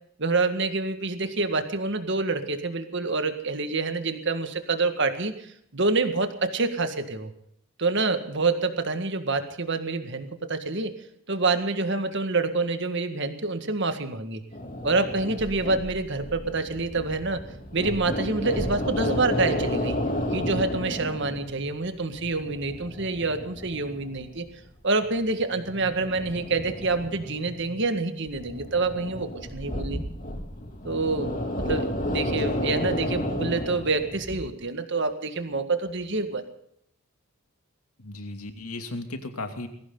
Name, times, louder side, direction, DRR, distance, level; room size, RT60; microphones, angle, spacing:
voice 1, 0.2-5.3 5.7-7.3 7.8-10.9 11.3-14.4 14.8-17.4 17.7-20.0 20.3-24.5 24.8-30.0 30.8-36.4, right 3 dB, 55° right, 8 dB, 1.8 m, -27 dB
sound 1, 14.5-21.8 22.1-24.5 25.0-27.8 28.3-34.4, left 1 dB, 35° left, 3.0 m, -32 dB
voice 2, 32.3-32.6 38.0-39.7, left 2 dB, 90° left, 5 dB, 2.7 m, -35 dB
21.0 x 16.5 x 3.9 m, 0.70 s
head